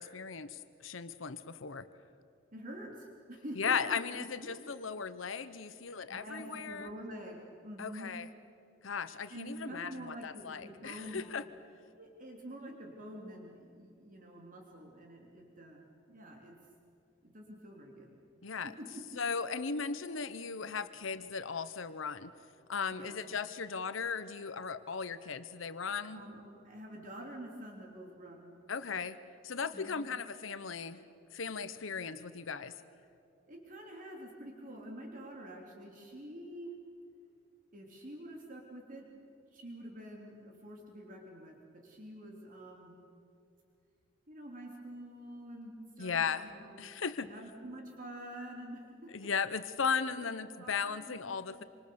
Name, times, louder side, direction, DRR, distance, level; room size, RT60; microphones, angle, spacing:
voice 1, 0.0-1.9 3.6-6.9 7.8-8.3 8.8-11.4 18.4-18.7 19.1-22.3 22.7-26.2 28.7-29.2 29.4-31.0 31.3-32.7 46.0-46.5 46.8-47.3 49.1-51.6, left 6 dB, 75° left, 13 dB, 0.9 m, -37 dB
voice 2, 2.5-4.0 4.4-4.9 6.1-8.1 9.3-11.3 12.0-16.5 17.2-18.1 18.6-18.9 22.9-23.2 26.1-28.5 29.7-30.1 33.5-36.7 37.7-39.1 39.5-42.9 44.3-46.8 47.2-48.8 50.2-50.3 50.6-51.6, right 1 dB, 45° right, 0 dB, 3.2 m, -47 dB
27.0 x 26.5 x 7.0 m, 2.6 s
head